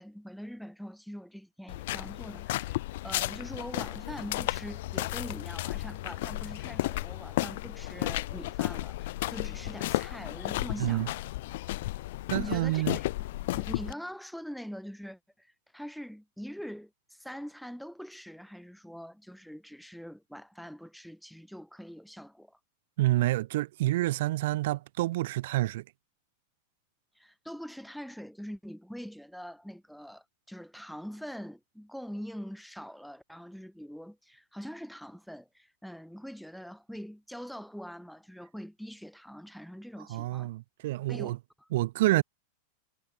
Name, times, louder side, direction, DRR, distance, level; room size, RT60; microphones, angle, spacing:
voice 1, 0.0-11.2 12.3-13.0 13.5-22.6 27.2-40.5 41.1-41.7, equal, ahead, 6.5 m, -43 dB
sound 1, 1.7-13.9, left 17 dB, 55° left, 0.3 m, -33 dB
voice 2, 10.8-11.1 12.3-13.0 23.0-25.8 40.1-41.4 41.7-42.2, right 17 dB, 55° right, 1.4 m, -28 dB
figure-of-eight pair, 90°, 0 cm